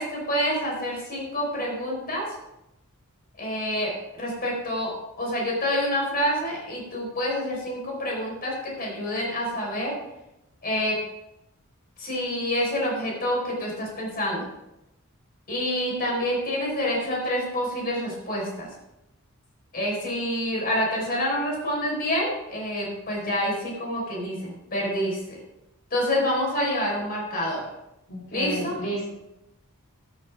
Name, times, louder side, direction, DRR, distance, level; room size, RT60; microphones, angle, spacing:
voice 1, 0.0-2.3 3.4-9.9 10.6-11.0 12.0-14.5 15.5-18.7 19.7-25.4 25.9-27.6 28.3-28.8, equal, 40° left, -2 dB, 4.6 m, -27 dB
voice 2, 28.1-29.1, equal, 70° left, -5 dB, 3.7 m, -31 dB
12.5 x 12.5 x 3.6 m, 0.89 s
head